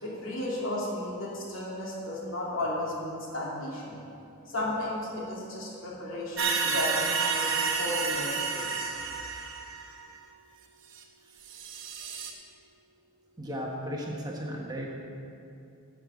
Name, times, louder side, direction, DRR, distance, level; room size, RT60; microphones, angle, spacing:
voice 1, 0.0-4.0 4.5-9.0, left 1 dB, 65° left, -5 dB, 2.6 m, -34 dB
sound 1, 6.4-10.1 11.0-11.1 11.4-12.3, right 5 dB, 60° right, 1.1 m, -30 dB
voice 2, 13.4-14.9, equal, 20° right, -2 dB, 1.1 m, -35 dB
11.0 x 6.5 x 7.0 m, 2.6 s
head